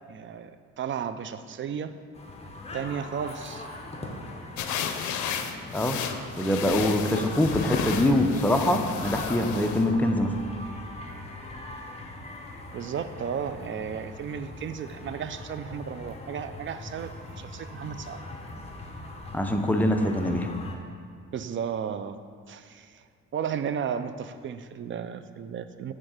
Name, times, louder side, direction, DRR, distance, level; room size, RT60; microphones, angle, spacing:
voice 1, 0.0-1.9 2.7-3.7 12.7-17.1 17.4-18.2 21.3-22.2 22.5-23.0 23.3-25.9, right 7 dB, 40° right, 11 dB, 0.4 m, -34 dB
sound 1, 2.1-20.7, left 2 dB, 20° left, 1.0 m, -41 dB
sound 2, 4.6-9.9, left 7 dB, 75° left, 0.6 m, -33 dB
voice 2, 5.5-6.0 6.4-10.3 19.3-20.5, left 1 dB, 5° left, 4 dB, 0.6 m, -24 dB
8.8 x 3.7 x 4.9 m, 2.2 s
cardioid pair, 90°, 30 cm